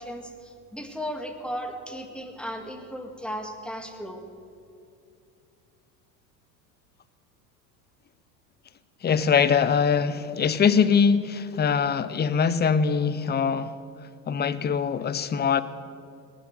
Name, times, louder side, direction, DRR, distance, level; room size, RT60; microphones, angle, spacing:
voice 1, 0.0-4.2, equal, ahead, 5 dB, 2.0 m, -36 dB
voice 2, 9.0-13.8 14.3-15.6, left 6 dB, 20° left, 15 dB, 0.7 m, -22 dB
19.0 x 7.9 x 9.5 m, 2.5 s
hypercardioid pair, 80°, 49 cm